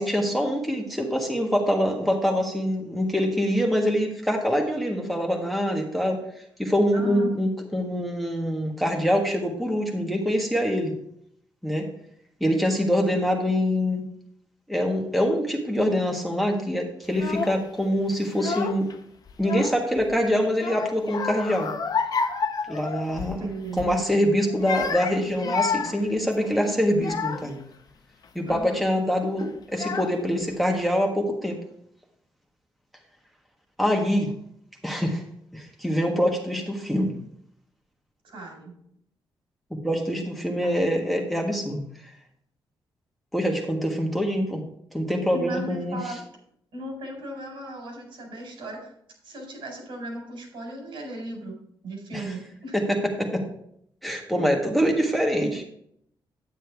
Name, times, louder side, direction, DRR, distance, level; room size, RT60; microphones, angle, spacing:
voice 1, 0.0-6.2 6.6-10.9 11.6-11.9 12.4-14.0 14.7-18.9 19.4-21.7 22.7-23.5 23.8-27.6 28.3-31.6 33.8-34.3 34.8-35.2 35.5-37.1 39.7-41.8 43.3-44.6 44.9-46.1 52.1-52.2 52.7-53.5 54.0-55.6, equal, ahead, 1 dB, 1.4 m, -24 dB
voice 2, 6.9-7.3 23.3-23.9 28.5-28.8 38.2-38.8 45.3-46.2 46.7-48.9 49.2-51.6 51.8-52.8, right 1 dB, 85° right, 1 dB, 4.4 m, -36 dB
Child speech kid speaking / Crying sobbing, 17.1-17.6 18.3-18.9 19.3-20.1 20.5-23.4 23.7-24.0 24.5-27.6 28.2-28.6 29.4-29.5 29.7-30.4, left 5 dB, 50° left, 0.8 m, -30 dB
9.4 x 8.7 x 3.5 m, 0.70 s
cardioid pair, 120°, 9 cm